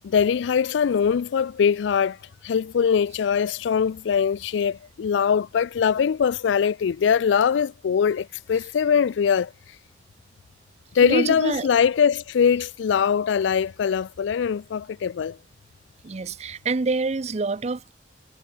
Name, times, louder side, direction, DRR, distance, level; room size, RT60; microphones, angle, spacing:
voice 1, 0.0-2.2 2.4-9.5 10.9-15.4, left 7 dB, 85° left, 0.4 m, -22 dB
voice 2, 11.0-11.7 16.0-17.9, right 3 dB, 40° right, 0.5 m, -26 dB
head